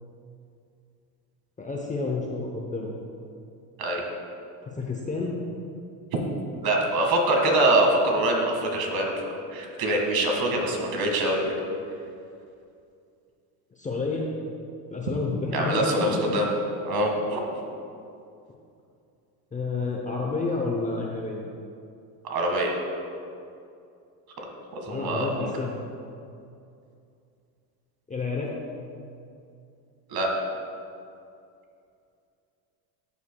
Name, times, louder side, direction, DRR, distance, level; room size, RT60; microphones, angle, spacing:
voice 1, 1.6-2.9 4.7-5.4 13.7-14.3 14.9-16.3 19.5-21.4 24.9-25.7 28.1-28.6, left 3 dB, 15° left, -1 dB, 0.7 m, -30 dB
voice 2, 6.6-11.5 15.5-16.5 16.8-17.4 22.2-22.8 24.4-24.5 24.7-25.5 30.1-30.3, right 1 dB, 45° right, 1 dB, 1.8 m, -24 dB
12.5 x 7.0 x 2.3 m, 2.5 s
supercardioid pair, 105°, 48 cm